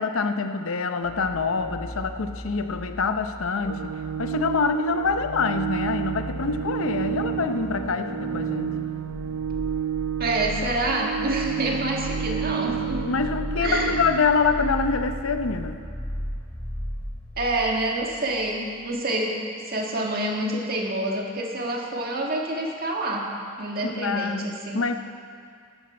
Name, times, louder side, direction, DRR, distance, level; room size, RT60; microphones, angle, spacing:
voice 1, 0.0-8.8 13.0-15.8 23.8-24.9, left 4 dB, 85° left, 8 dB, 0.7 m, -26 dB
sound 1, 1.0-18.6 18.8-18.9, equal, 10° left, 0.9 m, -36 dB
Organ, 3.6-14.6, right 9 dB, 80° right, 0.4 m, -30 dB
voice 2, 10.2-13.1 13.6-14.0 17.4-23.3 23.6-24.8, right 1 dB, 45° right, 0 dB, 1.7 m, -27 dB
14.0 x 12.5 x 4.3 m, 2.2 s
head